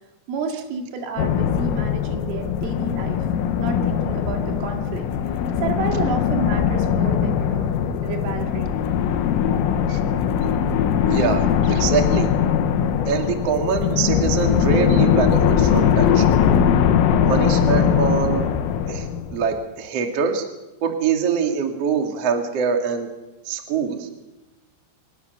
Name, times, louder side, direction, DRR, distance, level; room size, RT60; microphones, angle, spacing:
voice 1, 0.3-5.1 5.6-7.7 8.0-8.8, right 5 dB, 75° right, 3 dB, 4.8 m, -30 dB
sound 1, 1.2-19.6, left 8 dB, 85° left, 3.9 m, -20 dB
voice 2, 11.1-12.3 13.0-16.4 17.2-18.5 18.9-19.1 19.3-20.4 20.8-23.1 23.4-24.1, right 6 dB, 45° right, 3 dB, 2.3 m, -23 dB
25.0 x 20.0 x 6.7 m, 1.1 s
omnidirectional pair, 5.9 m